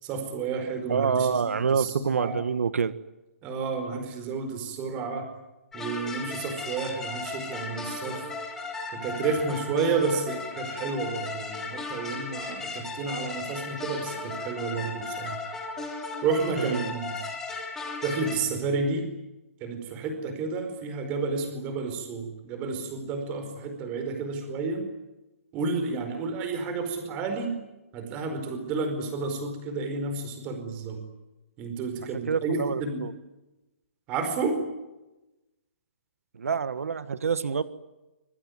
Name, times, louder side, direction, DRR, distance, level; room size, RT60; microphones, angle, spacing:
voice 1, 0.0-2.3 3.4-5.3 5.7-8.2 8.9-15.4 16.2-17.2 18.0-19.1 19.6-24.8 25.5-27.6 27.9-31.0 31.6-33.0 34.1-34.6, right 4 dB, 15° right, 7 dB, 4.7 m, -31 dB
voice 2, 0.9-2.9 16.6-16.9 32.3-33.1 36.3-37.6, right 6 dB, 90° right, 13 dB, 1.6 m, -27 dB
sound 1, 5.7-18.4, left 3 dB, 5° left, 3.4 m, -36 dB
25.0 x 22.5 x 9.5 m, 1.0 s
hypercardioid pair, 175°, 8 cm